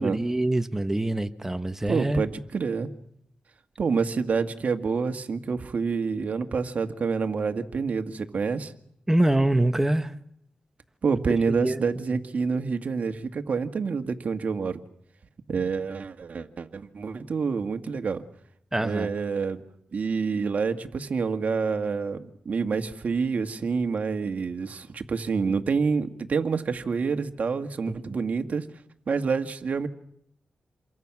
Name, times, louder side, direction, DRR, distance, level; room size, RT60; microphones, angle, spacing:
voice 1, 0.0-2.2 9.1-10.1 11.6-12.2 18.7-19.1 28.0-28.1, right 1 dB, 15° right, 1.4 m, -25 dB
voice 2, 1.9-2.9 3.8-8.7 11.0-14.8 15.5-18.2 18.8-19.6 19.9-28.7 29.1-29.9, right 5 dB, 60° right, 1.8 m, -27 dB
28.5 x 23.5 x 6.1 m
cardioid pair, 65°, 3 cm